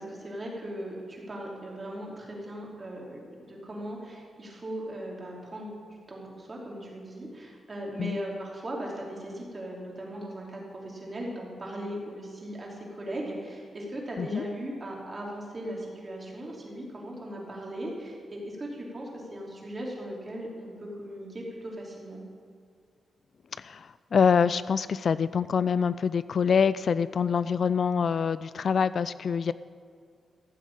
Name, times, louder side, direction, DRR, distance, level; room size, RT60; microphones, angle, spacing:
voice 1, 0.0-22.2, right 1 dB, 30° right, -2 dB, 3.3 m, -38 dB
voice 2, 23.6-29.5, left 6 dB, 50° left, 16 dB, 0.3 m, -25 dB
14.5 x 7.5 x 9.0 m, 2.1 s
wide cardioid pair, 130°, 0 cm